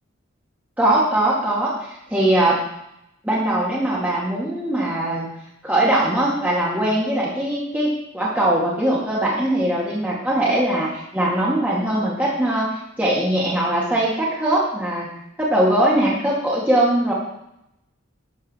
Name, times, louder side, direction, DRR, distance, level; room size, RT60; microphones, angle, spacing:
voice 1, 0.8-2.6 3.2-5.3 5.6-15.1 15.4-17.1, right 1 dB, 10° right, -5 dB, 2.1 m, -21 dB
12.5 x 4.8 x 7.3 m, 0.83 s
head